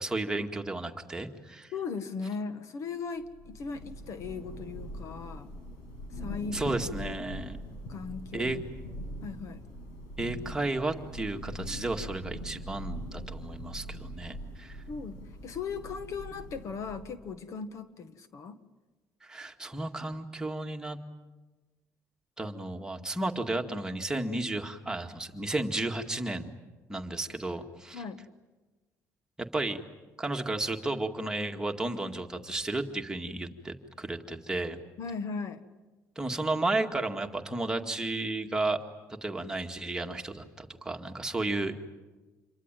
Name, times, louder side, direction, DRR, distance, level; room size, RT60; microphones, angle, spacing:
voice 1, 0.0-1.7 6.5-7.6 8.3-8.6 10.2-14.8 19.2-21.0 22.4-26.5 26.9-28.0 29.4-29.8 30.2-34.8 36.2-38.8 39.2-41.7, right 2 dB, 10° right, 3 dB, 2.0 m, -33 dB
voice 2, 1.7-5.5 6.1-7.5 7.9-8.5 9.2-9.6 14.9-18.6 27.9-28.2 35.0-35.6, left 5 dB, 55° left, 11 dB, 1.6 m, -38 dB
Thunder / Rain, 3.2-17.3, equal, 85° left, 7.4 m, -42 dB
27.5 x 23.5 x 9.1 m, 1.2 s
cardioid pair, 110°, 6 cm